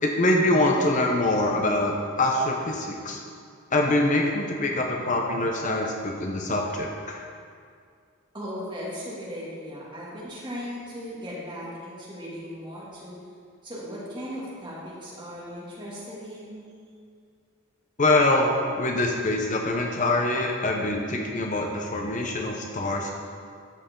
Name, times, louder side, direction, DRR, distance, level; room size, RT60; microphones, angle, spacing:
voice 1, 0.0-3.2 3.7-7.2 18.0-23.1, left 2 dB, 40° left, 1 dB, 0.8 m, -24 dB
voice 2, 8.3-13.2 13.6-16.6, equal, 25° right, -7 dB, 2.4 m, -37 dB
13.0 x 6.7 x 3.8 m, 2.2 s
head